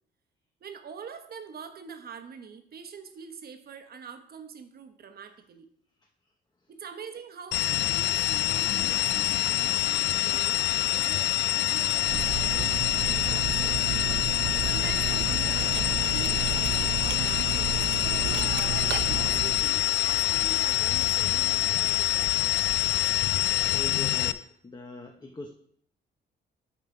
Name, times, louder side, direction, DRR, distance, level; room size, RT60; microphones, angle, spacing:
voice 1, 0.6-5.7 6.7-14.2 14.6-22.7, right 6 dB, 50° right, 8 dB, 1.0 m, -44 dB
sound 1, 7.5-24.3, left 13 dB, 65° left, 0.4 m, -26 dB
Cutlery silverware, 12.0-19.7, right 8 dB, 70° right, 0.7 m, -32 dB
voice 2, 23.7-25.5, left 3 dB, 20° left, 2 dB, 0.8 m, -41 dB
8.5 x 3.9 x 5.8 m, 0.66 s
cardioid pair, 90°, 20 cm